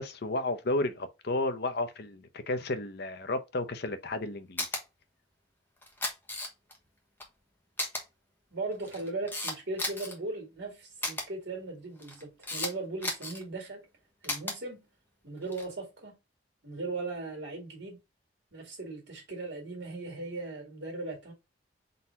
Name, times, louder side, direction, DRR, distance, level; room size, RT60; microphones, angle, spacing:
voice 1, 0.0-4.7, left 2 dB, 55° left, 0.6 m, -32 dB
Camera, 4.6-4.8 5.8-6.8 7.2-7.3 7.8-8.0 8.7-10.1 11.0-11.2 12.0-12.7 13.0-13.4 14.2-14.5 15.4-15.7, left 2 dB, 10° left, 1.0 m, -34 dB
voice 2, 8.5-13.8 14.2-14.8 15.2-16.1 16.6-18.0 18.5-21.3, right 3 dB, 60° right, 2.0 m, -38 dB
3.9 x 2.8 x 4.3 m
head